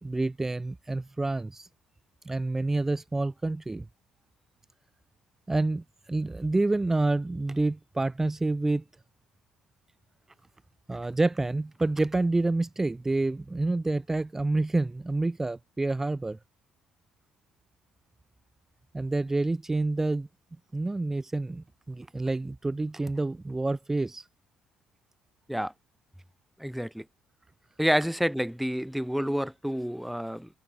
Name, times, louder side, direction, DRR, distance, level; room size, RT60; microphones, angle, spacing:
voice 1, 0.0-1.7 2.2-3.9 5.5-8.8 10.9-16.4 18.9-20.3 20.7-24.3, right 2 dB, 20° right, 4.3 m, -28 dB
voice 2, 26.6-27.1 27.8-30.5, equal, ahead, 6.0 m, -28 dB
hypercardioid pair, 55°, 2 cm